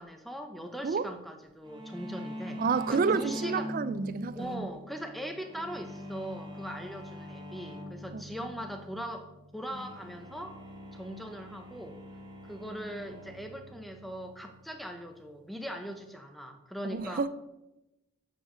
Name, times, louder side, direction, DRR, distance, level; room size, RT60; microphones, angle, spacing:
voice 1, 0.0-2.6 2.9-3.7 4.3-9.3 9.5-10.6 10.9-12.0 12.4-17.2, equal, ahead, 0.6 m, -40 dB
sound 1, 1.7-16.1, left 1 dB, 20° right, 0.9 m, -44 dB
voice 2, 2.6-4.7 8.1-8.5 16.8-17.3, right 5 dB, 40° right, 0.3 m, -30 dB
6.9 x 6.3 x 4.9 m
head